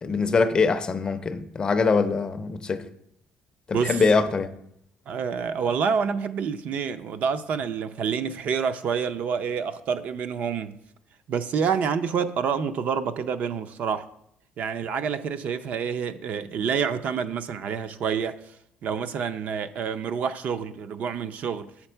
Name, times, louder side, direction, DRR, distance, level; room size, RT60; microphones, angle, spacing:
voice 1, 0.0-2.9 3.7-4.5, left 4 dB, 25° left, 0.5 m, -23 dB
voice 2, 5.1-10.8 11.3-14.0 14.6-18.6 18.8-21.7, right 6 dB, 45° right, 0.4 m, -28 dB
8.4 x 5.8 x 4.4 m
cardioid pair, 160°, 4 cm